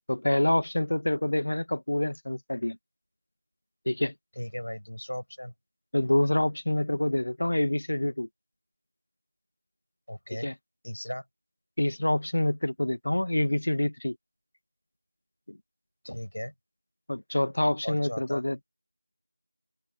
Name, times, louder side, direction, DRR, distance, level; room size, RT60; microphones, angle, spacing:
voice 1, 0.1-2.8 3.8-4.1 5.9-8.3 10.4-10.5 11.8-14.2 15.5-15.6 17.1-18.7, left 1 dB, 45° left, 1.8 m, -27 dB
voice 2, 4.4-5.5 10.1-10.5 10.8-11.2 16.0-16.5 17.8-18.4, equal, 75° left, 6.4 m, -37 dB
open air
figure-of-eight pair, 175°, 0 cm